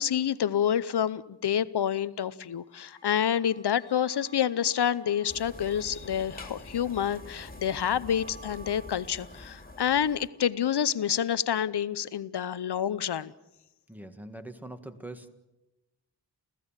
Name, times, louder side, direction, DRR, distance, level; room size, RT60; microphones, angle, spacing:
voice 1, 0.0-13.3, left 9 dB, 75° left, 17 dB, 0.8 m, -28 dB
sound 1, 2.5-11.1, right 2 dB, 40° right, 3.6 m, -54 dB
sound 2, 5.3-10.3, left 2 dB, 20° left, 2.6 m, -46 dB
voice 2, 13.9-15.3, right 2 dB, 5° right, 8 dB, 1.8 m, -43 dB
29.5 x 15.5 x 7.3 m, 0.97 s
wide cardioid pair, 85°, 40 cm